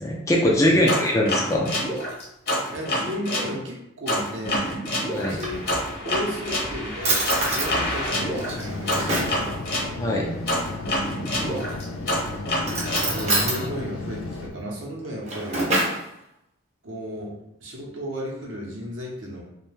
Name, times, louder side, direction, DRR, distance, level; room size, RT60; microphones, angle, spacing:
voice 1, 0.0-1.7 5.1-5.4 10.0-10.3, left 1 dB, 15° left, -2 dB, 0.4 m, -21 dB
sound 1, 0.9-3.5 4.1-9.9 10.5-13.7, left 1 dB, 50° left, 0.9 m, -27 dB
voice 2, 2.7-4.8 5.2-5.6 6.0-9.7 11.4-11.7 12.7-15.7 16.8-17.3 17.6-19.4, equal, 65° right, -2 dB, 0.7 m, -34 dB
Drawer open or close, 5.1-6.1 6.6-6.7 7.0-7.7 8.3-9.4 11.3-11.8 12.6-13.6 15.0-16.0, right 1 dB, 35° right, 0.6 m, -27 dB
sound 2, 8.2-14.5, left 2 dB, 90° left, 0.4 m, -34 dB
2.6 x 2.2 x 3.2 m, 0.81 s
head